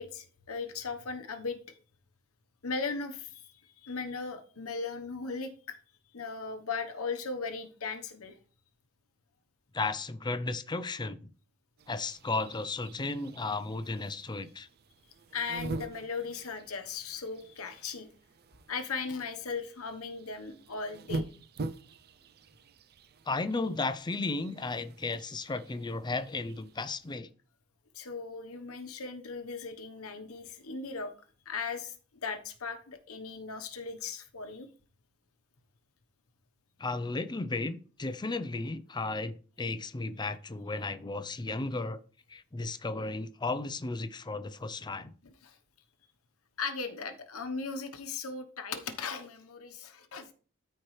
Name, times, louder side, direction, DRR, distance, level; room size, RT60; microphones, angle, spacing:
voice 1, 0.0-1.6 2.6-3.4 3.8-5.8 6.1-8.3 15.3-18.1 18.7-21.3 27.9-31.1 31.4-31.9 32.2-34.7 45.4-45.6 46.6-50.3, left 4 dB, 70° left, 7 dB, 1.1 m, -37 dB
voice 2, 9.7-11.3 11.9-14.7 23.3-27.3 36.8-42.0 42.3-45.1, left 3 dB, 20° left, 12 dB, 0.5 m, -34 dB
sound 1, 11.8-27.2, right 2 dB, 45° right, 0.5 m, -45 dB
13.0 x 4.5 x 3.2 m, 0.39 s
head